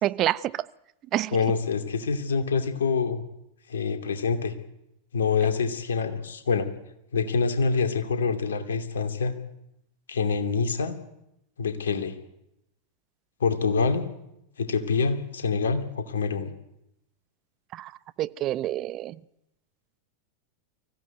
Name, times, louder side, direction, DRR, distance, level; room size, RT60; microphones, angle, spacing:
voice 1, 0.0-0.6 1.1-1.4 17.7-17.9 18.2-19.2, right 14 dB, 35° right, 17 dB, 0.8 m, -27 dB
voice 2, 1.3-3.2 3.7-4.5 5.1-6.7 7.1-9.3 10.1-11.0 11.6-12.1 13.4-14.1 14.6-16.5, left 5 dB, 70° left, 7 dB, 2.7 m, -26 dB
24.5 x 16.0 x 9.3 m, 0.85 s
figure-of-eight pair, 90°, 0 cm